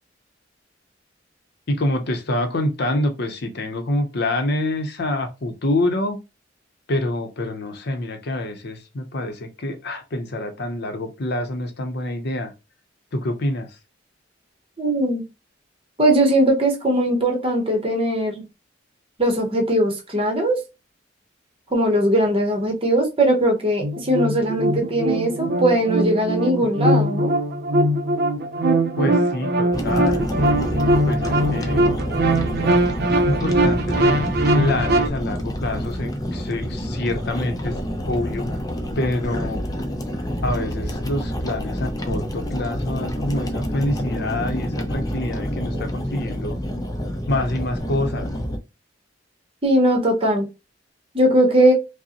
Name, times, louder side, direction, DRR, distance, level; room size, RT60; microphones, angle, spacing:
voice 1, 1.7-6.2 6.9-12.5 13.1-13.8 29.0-30.3 31.1-31.8 33.1-34.3 34.5-37.8 38.1-38.5 39.0-39.6 40.4-46.6 47.3-48.3, left 1 dB, 60° left, 0.7 m, -26 dB
voice 2, 14.8-15.2 16.0-18.4 19.2-20.6 21.7-27.3 49.6-50.5 51.1-51.7, right 1 dB, 30° right, 0.8 m, -19 dB
sound 1, 23.8-35.1, right 1 dB, 60° right, 0.6 m, -21 dB
sound 2, 29.7-48.6, equal, 20° left, 0.5 m, -28 dB
5.1 x 2.0 x 2.8 m
head